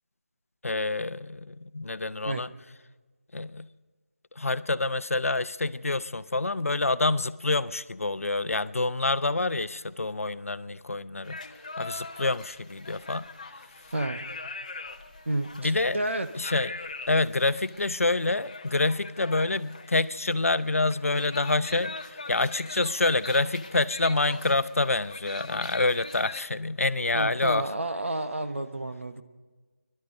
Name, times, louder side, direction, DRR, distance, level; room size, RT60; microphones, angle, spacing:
voice 1, 0.6-2.5 3.3-3.7 4.4-11.4 11.8-13.3 15.6-16.0 16.3-16.7 17.1-27.7, left 2 dB, 75° left, 15 dB, 0.6 m, -27 dB
sound 1, 11.2-26.4, left 3 dB, 30° left, 0.7 m, -42 dB
voice 2, 15.3-16.3 27.1-29.2, right 2 dB, 55° right, 8 dB, 1.0 m, -30 dB
20.0 x 12.0 x 5.3 m, 1.3 s
figure-of-eight pair, 175°, 8 cm